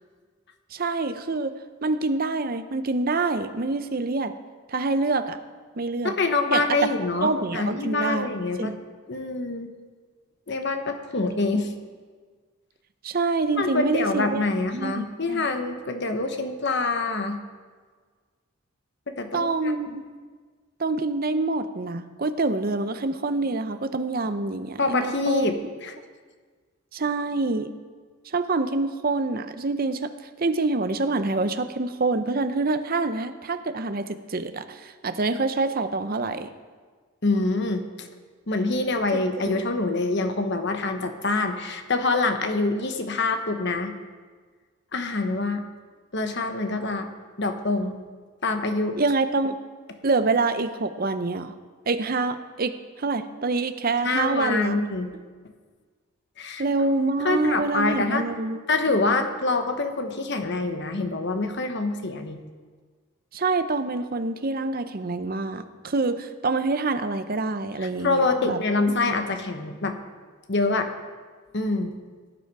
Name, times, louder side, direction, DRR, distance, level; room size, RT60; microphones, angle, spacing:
voice 1, 0.7-1.5 1.8-4.3 4.7-5.4 5.8-6.1 6.5-6.6 7.2-8.3 8.6-8.8 13.0-14.5 14.7-15.5 19.3-20.0 20.8-25.5 26.9-27.7 28.3-30.1 30.4-36.5 39.1-39.6 49.0-49.5 50.0-51.5 51.9-52.7 53.0-54.8 56.6-58.6 63.3-68.6 69.1-69.2, right 3 dB, 40° right, 10 dB, 0.6 m, -26 dB
voice 2, 6.0-8.7 9.1-9.7 10.5-11.7 13.6-17.4 19.1-20.0 24.8-25.9 37.2-38.1 38.5-43.9 44.9-45.6 46.1-47.1 47.4-48.0 48.4-49.0 54.0-55.1 56.4-56.6 57.2-58.3 58.7-62.4 68.0-69.9 70.5-70.9 71.5-71.9, left 3 dB, 50° left, 7 dB, 1.0 m, -25 dB
16.5 x 9.2 x 4.8 m, 1.5 s
head